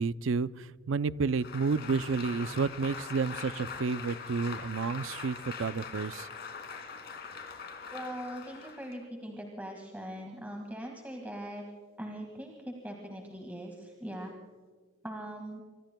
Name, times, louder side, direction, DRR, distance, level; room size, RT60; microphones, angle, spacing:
voice 1, 0.0-6.3, right 4 dB, 75° right, 15 dB, 0.5 m, -31 dB
Applause, 1.3-9.0, left 5 dB, 50° left, 2.4 m, -42 dB
voice 2, 7.9-11.6 12.0-14.3 15.0-15.6, equal, 10° right, 2 dB, 1.9 m, -41 dB
25.0 x 24.5 x 2.3 m, 1.5 s
head